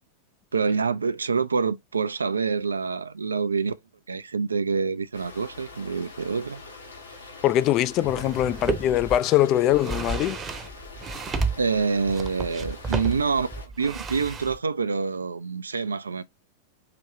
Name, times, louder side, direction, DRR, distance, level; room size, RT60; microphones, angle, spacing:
voice 1, 0.5-3.7 4.1-6.6 11.6-13.5 13.8-16.2, right 5 dB, 75° right, 0.5 m, -26 dB
sound 1, 5.1-13.7, left 3 dB, 75° left, 1.5 m, -44 dB
voice 2, 7.4-10.4, left 13 dB, 35° left, 0.4 m, -22 dB
sound 2, 8.0-9.2 9.7-14.6, right 3 dB, 20° right, 0.8 m, -32 dB
5.0 x 3.1 x 2.7 m
figure-of-eight pair, 90°, 0 cm